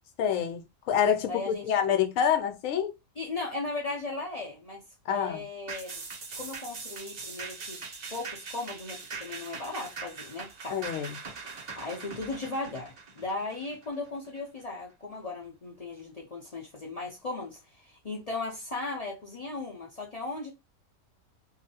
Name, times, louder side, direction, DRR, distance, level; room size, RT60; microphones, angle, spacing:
voice 1, 0.2-2.9 5.1-5.4 10.7-11.1, left 8 dB, 70° left, 1.0 m, -27 dB
voice 2, 1.3-1.8 3.2-4.8 5.1-6.0 6.4-7.8 8.1-10.8 11.2-20.5, left 3 dB, 40° left, 0.5 m, -37 dB
sound 1, 5.7-14.4 14.8-14.9, right 4 dB, 60° right, 0.4 m, -42 dB
2.7 x 2.5 x 2.7 m
omnidirectional pair, 1.5 m